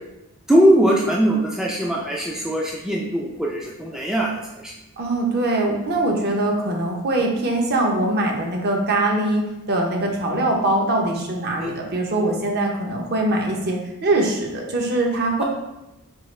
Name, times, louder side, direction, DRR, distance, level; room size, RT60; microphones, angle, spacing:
voice 1, 0.5-4.7 11.6-11.8, equal, ahead, -3 dB, 0.3 m, -20 dB
voice 2, 5.0-15.4, right 2 dB, 45° right, 1 dB, 0.7 m, -22 dB
4.6 x 2.8 x 3.1 m, 0.95 s
head